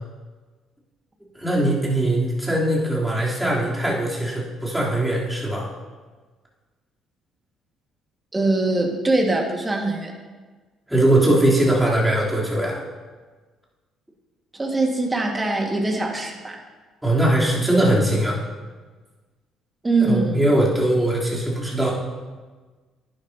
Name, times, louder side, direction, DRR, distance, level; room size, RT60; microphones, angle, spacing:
voice 1, 1.4-5.7 10.9-12.8 17.0-18.4 20.0-21.9, right 1 dB, 5° right, -5 dB, 3.4 m, -20 dB
voice 2, 8.3-10.1 14.5-16.6 19.8-20.4, right 2 dB, 20° right, 2 dB, 1.8 m, -22 dB
11.0 x 10.5 x 2.8 m, 1.4 s
figure-of-eight pair, 45°, 0 cm